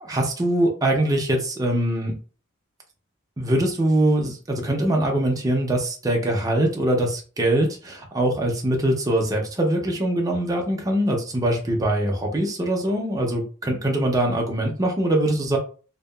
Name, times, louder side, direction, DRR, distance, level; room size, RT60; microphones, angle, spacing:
voice 1, 0.0-2.2 3.4-15.6, right 1 dB, 15° right, 0 dB, 0.5 m, -23 dB
2.7 x 2.2 x 2.2 m, 0.38 s
head